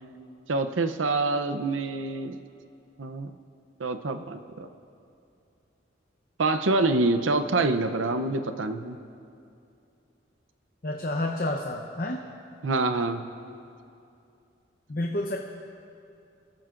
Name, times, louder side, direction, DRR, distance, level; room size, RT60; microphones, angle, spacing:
voice 1, 0.5-2.4 3.0-3.3 3.8-4.7 6.4-9.0 12.6-13.2, right 3 dB, 90° right, 9 dB, 0.7 m, -26 dB
voice 2, 10.8-12.2 14.9-15.4, left 1 dB, 45° left, 1 dB, 0.8 m, -29 dB
25.0 x 13.5 x 2.5 m, 2.6 s
head